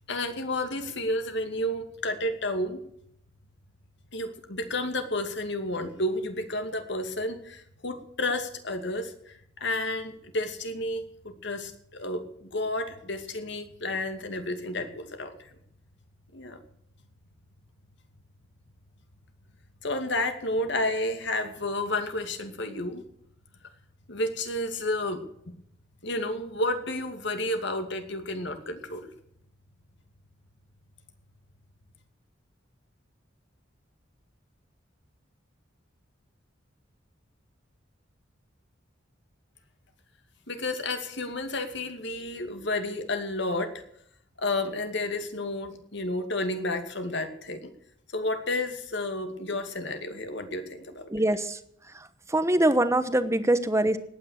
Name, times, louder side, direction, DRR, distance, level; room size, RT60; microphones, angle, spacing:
voice 1, 0.1-2.8 4.1-15.5 16.3-16.6 19.8-23.0 24.1-25.3 26.0-29.1 40.5-43.8 44.4-47.7 48.1-51.1, left 1 dB, 65° left, 7 dB, 2.4 m, -31 dB
voice 2, 51.1-51.6 51.9-54.0, right 1 dB, 15° right, 11 dB, 1.1 m, -24 dB
18.5 x 9.6 x 6.6 m, 0.72 s
head